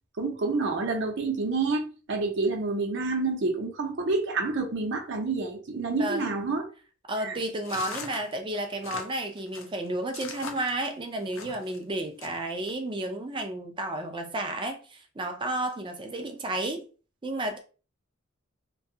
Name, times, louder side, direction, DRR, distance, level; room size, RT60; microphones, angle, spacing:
voice 1, 0.2-6.6 7.2-7.4, right 3 dB, 60° right, 0.7 m, -28 dB
voice 2, 6.0-6.3 7.1-16.8 17.2-17.6, right 1 dB, 25° right, 0.4 m, -32 dB
sound 1, 7.6-11.8 12.2-12.7, left 5 dB, 85° left, 0.5 m, -41 dB
2.7 x 2.3 x 2.7 m
head